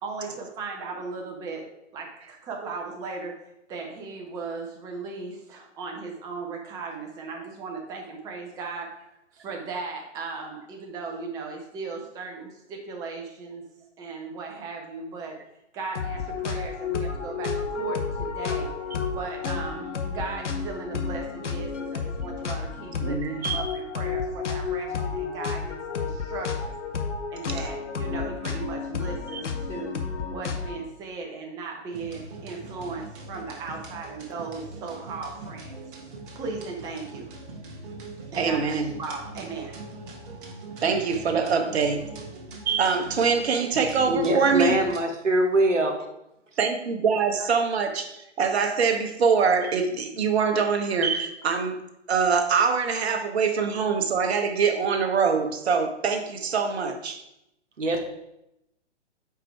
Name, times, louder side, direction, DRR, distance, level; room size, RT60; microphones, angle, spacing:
voice 1, 0.0-1.6 1.9-3.4 3.7-8.9 9.3-13.6 14.0-15.4 15.7-18.7 19.1-26.7 27.3-29.9 30.3-35.7 36.0-36.1 36.4-37.3 38.3-39.8, right 4 dB, 10° right, 1 dB, 0.5 m, -37 dB
sound 1, 15.9-30.9, left 5 dB, 75° left, 0.9 m, -31 dB
voice 2, 23.0-23.6 29.3-29.4 38.4-38.9 40.8-42.1 42.7-44.8 46.6-51.8 52.1-57.2, right 5 dB, 60° right, 6 dB, 1.0 m, -24 dB
sound 2, 31.9-45.0, right 3 dB, 45° right, 1.2 m, -41 dB
voice 3, 44.1-46.0 57.8-58.0, right 1 dB, 90° right, 3 dB, 1.0 m, -23 dB
4.9 x 4.5 x 4.5 m, 0.85 s
figure-of-eight pair, 125°, 36 cm